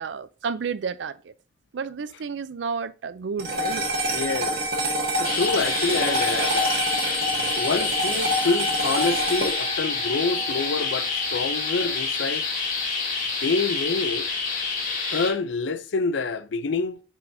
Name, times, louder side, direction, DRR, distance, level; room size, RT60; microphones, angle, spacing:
voice 1, 0.0-1.3 1.7-3.9 7.5-7.7, right 5 dB, 80° right, 0.4 m, -31 dB
sound 1, 3.4-11.9, right 1 dB, 55° right, 1.6 m, -28 dB
voice 2, 4.1-4.7 5.2-12.5 13.4-14.3 15.1-17.0, left 4 dB, 90° left, 0.5 m, -27 dB
sound 2, 5.2-15.3, left 4 dB, 45° left, 2.0 m, -27 dB
9.5 x 4.5 x 2.7 m
head